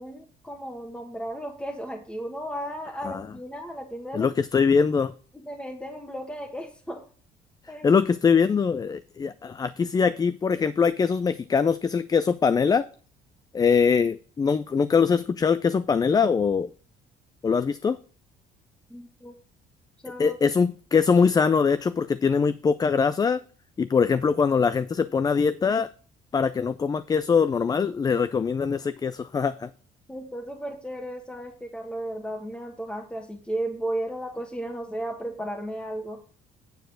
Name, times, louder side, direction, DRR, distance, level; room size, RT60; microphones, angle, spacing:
voice 1, 0.0-4.3 5.3-7.0 7.7-7.9 8.3-8.4 18.9-19.3 20.0-20.4 30.1-36.2, right 1 dB, 5° left, 2 dB, 1.4 m, -34 dB
voice 2, 4.1-5.1 7.8-12.8 13.5-16.7 17.4-18.0 20.2-23.4 23.8-25.9 26.3-29.7, left 5 dB, 20° left, 13 dB, 0.4 m, -22 dB
9.2 x 4.8 x 6.2 m, 0.40 s
cardioid pair, 110°, 17 cm